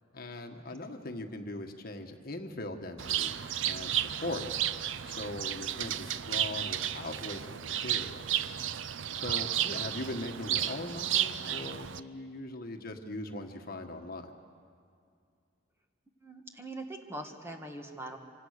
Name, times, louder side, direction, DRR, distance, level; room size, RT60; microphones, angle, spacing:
voice 1, 0.1-3.4 3.6-4.7 5.0-8.2 9.1-14.3, left 2 dB, 55° left, 5 dB, 1.6 m, -40 dB
Bird, 3.0-12.0, right 11 dB, 85° right, 0.6 m, -33 dB
voice 2, 16.2-18.2, right 1 dB, 15° right, 3 dB, 1.7 m, -42 dB
26.0 x 25.5 x 6.7 m, 2.4 s
head